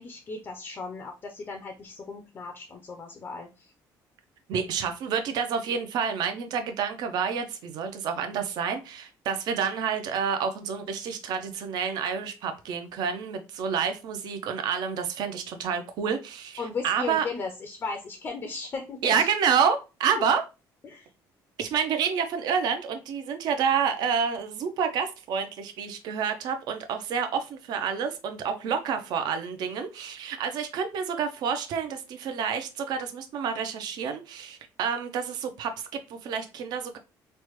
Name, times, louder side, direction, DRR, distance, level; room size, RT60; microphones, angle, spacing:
voice 1, 0.0-3.7 16.6-19.3 20.8-21.1, left 4 dB, 30° left, 4 dB, 0.4 m, -36 dB
voice 2, 4.5-17.2 19.0-20.4 21.6-37.0, right 7 dB, 65° right, 7 dB, 0.5 m, -29 dB
3.1 x 2.1 x 2.9 m, 0.29 s
cardioid pair, 140°, 8 cm